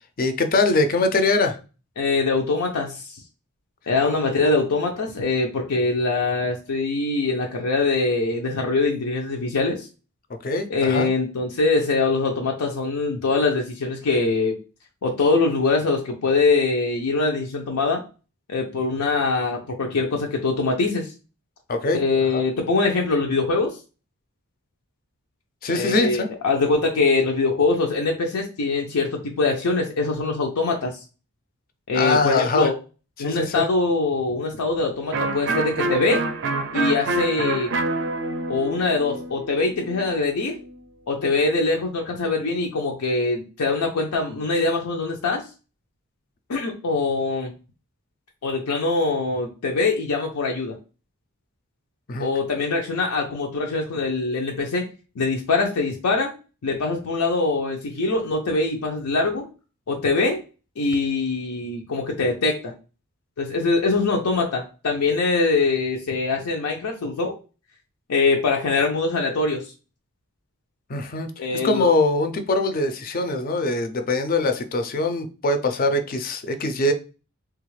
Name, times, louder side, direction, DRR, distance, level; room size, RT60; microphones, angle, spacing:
voice 1, 0.2-1.6 4.1-4.2 10.4-11.1 21.7-22.0 22.3-22.4 25.6-26.3 31.9-32.7 33.2-33.7 52.1-52.3 70.9-76.9, left 2 dB, 40° left, 0.4 m, -22 dB
voice 2, 2.0-3.2 3.9-9.9 10.7-14.6 15.0-18.0 18.5-21.1 21.9-23.8 25.7-31.0 31.9-32.7 33.2-36.2 36.7-37.7 38.5-40.6 41.1-45.5 46.5-47.5 48.4-50.8 52.2-54.9 55.2-56.3 56.6-59.5 59.9-60.4 60.8-62.7 63.4-67.3 68.1-69.6 71.4-71.9, left 3 dB, 90° left, 0.5 m, -23 dB
Electric guitar, 35.1-40.7, right 2 dB, 55° right, 0.4 m, -27 dB
3.4 x 2.4 x 3.1 m
head